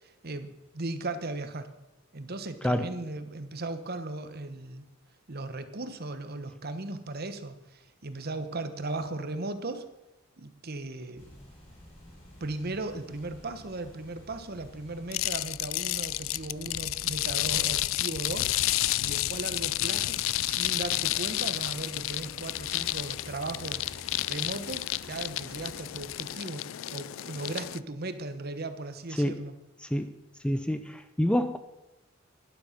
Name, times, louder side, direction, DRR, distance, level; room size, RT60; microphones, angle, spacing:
voice 1, 0.0-1.7 2.1-4.9 5.3-9.9 10.4-11.3 12.4-29.6, right 2 dB, 50° right, 10 dB, 1.1 m, -37 dB
sound 1, 11.2-26.2, equal, 30° left, 5.5 m, -51 dB
sound 2, 15.1-27.8, left 16 dB, 70° left, 0.4 m, -31 dB
voice 2, 30.4-31.6, equal, 5° left, 10 dB, 0.5 m, -27 dB
12.0 x 11.5 x 5.9 m, 0.99 s
head